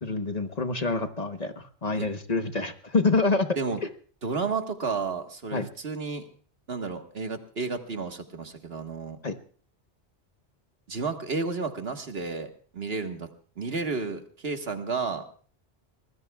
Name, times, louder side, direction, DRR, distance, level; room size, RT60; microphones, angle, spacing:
voice 1, 0.0-3.5 5.5-5.7 9.2-9.3, left 3 dB, 40° left, 7 dB, 1.1 m, -27 dB
voice 2, 4.2-6.3 6.7-9.2 10.9-13.3 13.6-15.3, right 4 dB, 65° right, 5 dB, 1.7 m, -32 dB
25.0 x 19.0 x 2.3 m, 0.42 s
omnidirectional pair, 1.1 m